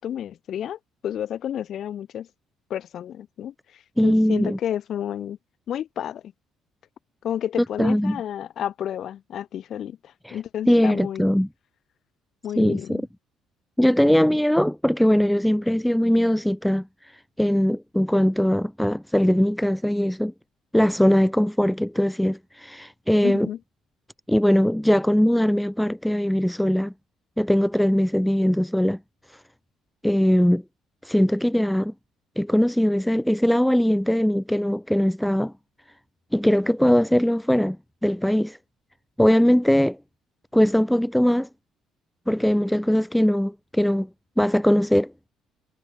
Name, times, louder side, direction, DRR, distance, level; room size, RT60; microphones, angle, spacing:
voice 1, 0.0-2.3 2.7-5.4 5.7-6.2 7.2-11.2 12.4-13.0 23.2-23.6, left 10 dB, 50° left, 7.9 m, -31 dB
voice 2, 4.0-4.6 7.8-8.2 10.3-10.4 10.7-11.5 12.6-13.0 13.8-16.9 17.4-20.3 20.7-23.5 24.3-26.9 27.4-29.0 30.0-30.6 31.0-31.9 32.4-35.5 36.3-37.8 38.0-38.6 39.2-40.0 40.5-41.5 42.3-44.1 44.4-45.1, equal, ahead, 2.0 m, -20 dB
cardioid pair, 140°, 0 cm